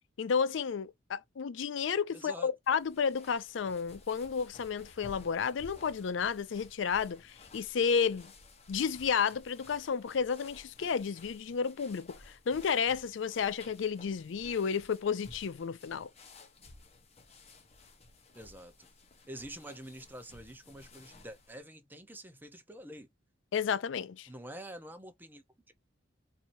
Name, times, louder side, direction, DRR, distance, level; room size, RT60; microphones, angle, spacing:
voice 1, 0.2-8.3 8.7-16.1 23.5-24.3, left 6 dB, 70° left, 0.4 m, -32 dB
voice 2, 2.1-2.5 18.3-18.9 19.3-23.1 24.3-25.7, right 1 dB, 10° right, 0.8 m, -47 dB
sound 1, 2.6-21.6, left 2 dB, 35° left, 0.9 m, -55 dB
4.6 x 2.8 x 2.7 m
head